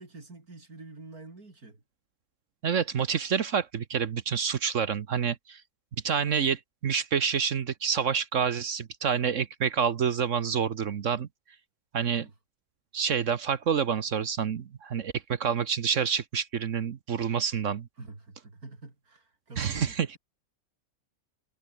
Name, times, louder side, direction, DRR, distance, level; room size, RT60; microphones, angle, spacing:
voice 1, 0.0-1.8 12.2-12.3 18.0-20.2, right 3 dB, 85° right, 4.8 m, -46 dB
voice 2, 2.6-5.6 6.0-11.3 11.9-12.2 12.9-17.9 19.6-20.1, right 7 dB, 60° right, 1.3 m, -28 dB
omnidirectional pair, 1.5 m